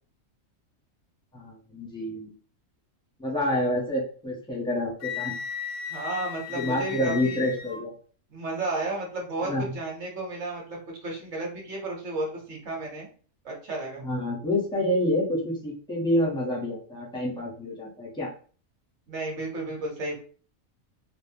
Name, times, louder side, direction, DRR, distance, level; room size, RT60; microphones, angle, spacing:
voice 1, 1.3-2.3 3.2-5.3 6.5-7.9 9.4-9.7 14.0-18.3, left 1 dB, 5° left, -4 dB, 0.4 m, -28 dB
Wind instrument woodwind instrument, 5.0-7.8, left 8 dB, 60° left, 0.5 m, -36 dB
voice 2, 5.9-7.4 8.3-13.1 13.4-14.0 19.1-20.2, right 2 dB, 60° right, -1 dB, 1.1 m, -33 dB
2.6 x 2.1 x 2.6 m, 0.41 s
omnidirectional pair, 1.5 m